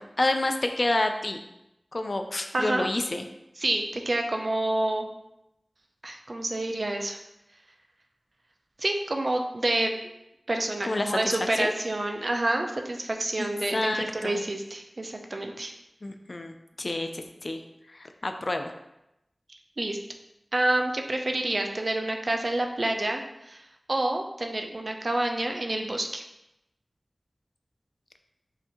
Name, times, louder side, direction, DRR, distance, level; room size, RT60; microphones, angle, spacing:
voice 1, 0.0-1.4 1.9-3.2 10.8-11.2 11.6-11.7 13.4-14.4 16.0-17.6 17.9-18.7, left 2 dB, 55° left, 6 dB, 0.4 m, -29 dB
voice 2, 2.5-2.9 3.6-5.1 6.0-7.2 8.8-10.1 10.5-15.7 19.5-20.0 20.5-26.2, right 1 dB, 55° right, 3 dB, 0.5 m, -28 dB
5.6 x 2.6 x 2.8 m, 0.88 s
wide cardioid pair, 55°, 0 cm